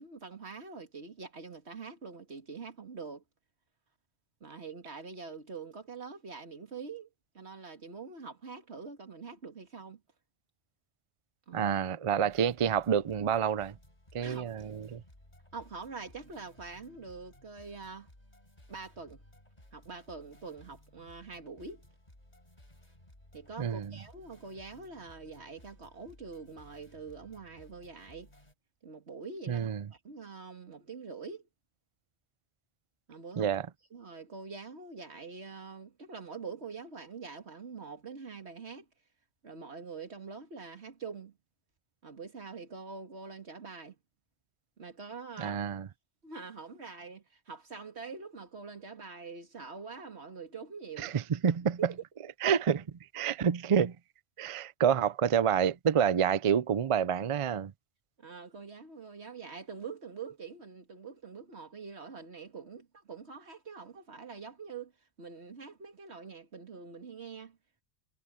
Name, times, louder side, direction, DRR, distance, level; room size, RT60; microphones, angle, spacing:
voice 1, 0.0-3.2 4.4-7.1 7.3-10.0 11.5-11.7 14.2-14.5 15.5-18.1 18.7-19.2 19.7-21.8 23.3-28.3 28.8-31.4 33.1-33.5 33.9-38.9 39.4-41.4 42.0-44.0 44.8-45.6 46.2-51.1 51.8-51.9 58.2-64.9 65.2-67.6, right 4 dB, 80° right, 2.4 m, -45 dB
voice 2, 11.5-13.7 14.1-15.0 23.6-23.9 29.5-29.8 33.4-33.7 45.4-45.9 51.0-51.8 52.4-52.8 53.1-54.0 54.4-57.7, right 8 dB, 45° right, 0.4 m, -28 dB
sound 1, 12.3-28.5, left 1 dB, 40° left, 5.9 m, -59 dB
omnidirectional pair, 1.1 m